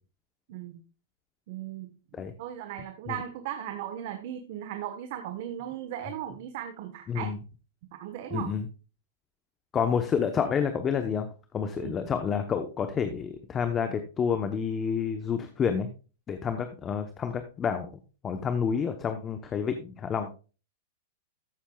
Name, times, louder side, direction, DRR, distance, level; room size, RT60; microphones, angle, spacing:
voice 1, 0.5-0.8 1.5-7.3 8.0-8.5 11.8-12.0, right 11 dB, 55° right, 7 dB, 1.2 m, -37 dB
voice 2, 7.1-7.4 8.3-8.7 9.7-11.3 11.5-15.9 16.3-17.9 18.2-20.4, left 7 dB, 20° left, 8 dB, 0.9 m, -29 dB
13.5 x 8.2 x 2.3 m, 0.34 s
hypercardioid pair, 140°, 0 cm